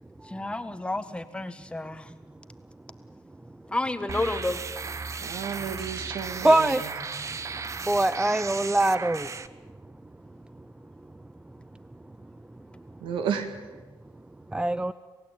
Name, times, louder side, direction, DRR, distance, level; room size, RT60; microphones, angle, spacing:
voice 1, 0.3-2.1 3.7-4.6, left 2 dB, 10° left, 10 dB, 1.6 m, -31 dB
sound 1, 4.1-9.5, right 5 dB, 35° right, 1.1 m, -35 dB
voice 2, 5.2-6.9 13.0-13.5, right 7 dB, 75° right, 8 dB, 2.5 m, -32 dB
voice 3, 6.4-6.8 7.9-9.3 14.5-14.9, right 1 dB, 10° right, 15 dB, 0.6 m, -22 dB
27.5 x 16.0 x 9.0 m, 1.3 s
cardioid pair, 80°, 9 cm